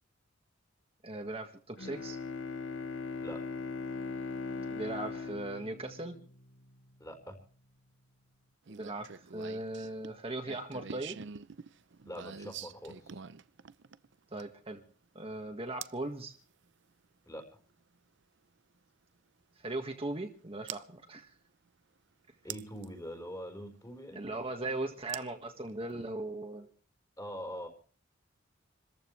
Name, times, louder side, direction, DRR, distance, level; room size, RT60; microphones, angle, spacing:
voice 1, 1.0-2.2 4.7-6.2 8.7-11.2 14.3-14.8 15.1-16.3 19.6-21.3 24.1-26.7, right 2 dB, 30° right, 4 dB, 1.6 m, -38 dB
Bowed string instrument, 1.8-6.7, left 4 dB, 70° left, 0.9 m, -40 dB
voice 2, 7.0-7.4 12.1-13.2 17.3-17.6 22.4-24.2 27.2-27.7, equal, 15° left, 4 dB, 4.5 m, -43 dB
sound 1, 8.7-14.7 15.8-16.1 17.9-18.0 20.7-20.8 22.5-22.9 25.1-26.1, right 8 dB, 65° right, 0.7 m, -45 dB
28.0 x 14.5 x 3.2 m, 0.42 s
head